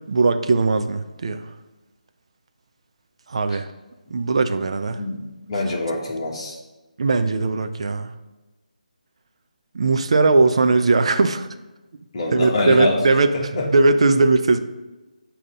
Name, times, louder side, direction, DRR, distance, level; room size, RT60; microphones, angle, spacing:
voice 1, 0.1-1.4 3.3-3.7 4.1-5.0 7.0-8.1 9.7-11.5 12.3-13.3 13.7-14.6, right 3 dB, 45° right, 9 dB, 0.4 m, -19 dB
voice 2, 5.5-6.5 12.1-13.0 13.3-13.7, left 2 dB, 40° left, -1 dB, 1.3 m, -24 dB
7.2 x 2.9 x 5.1 m, 1.1 s
figure-of-eight pair, 150°, 4 cm